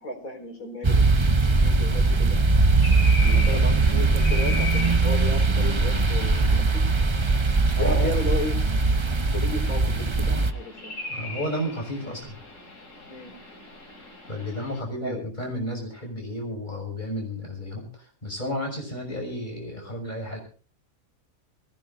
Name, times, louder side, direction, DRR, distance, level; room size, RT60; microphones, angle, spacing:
voice 1, 0.0-2.4 3.2-6.8 7.8-8.6 9.3-10.9 13.1-13.3 15.0-15.3, left 2 dB, 75° left, 2 dB, 4.7 m, -34 dB
sound 1, 0.8-10.5, right 3 dB, 25° right, 0.7 m, -21 dB
sound 2, 2.8-14.8, left 3 dB, 60° left, 4.2 m, -39 dB
voice 2, 3.3-3.7 7.6-8.2 11.1-12.4 14.3-20.4, equal, 30° left, 2 dB, 6.6 m, -32 dB
23.5 x 17.0 x 2.6 m, 0.37 s
omnidirectional pair, 1.5 m